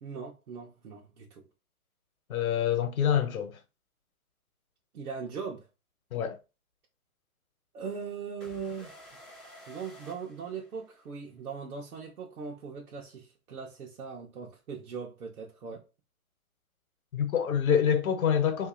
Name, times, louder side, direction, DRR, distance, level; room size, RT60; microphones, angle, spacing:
voice 1, 0.0-1.4 4.9-5.7 7.7-8.9 9.7-15.8, right 6 dB, 85° right, 0.9 m, -40 dB
voice 2, 2.3-3.6 6.1-6.4 17.1-18.7, left 8 dB, 75° left, 0.9 m, -26 dB
sound 1, 8.4-11.2, equal, ahead, 0.4 m, -52 dB
2.8 x 2.3 x 3.6 m
hypercardioid pair, 140°, 43 cm